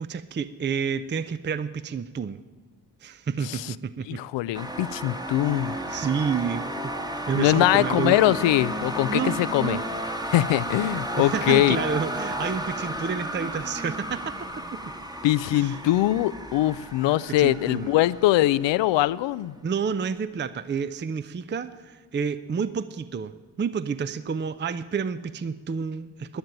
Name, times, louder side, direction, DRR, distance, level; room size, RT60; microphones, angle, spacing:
voice 1, 0.0-2.4 3.0-4.2 5.6-6.9 7.3-8.4 9.1-9.8 11.2-14.6 15.5-15.8 17.4-17.9 19.6-26.4, right 6 dB, 25° right, 13 dB, 0.6 m, -30 dB
voice 2, 3.4-3.7 4.1-5.7 7.4-9.8 10.2-11.8 15.2-19.5, left 15 dB, 70° left, 19 dB, 0.6 m, -22 dB
sound 1, 4.5-19.4, right 1 dB, 10° right, 1.2 m, -33 dB
10.5 x 10.5 x 9.0 m, 1.4 s
hypercardioid pair, 40°, 46 cm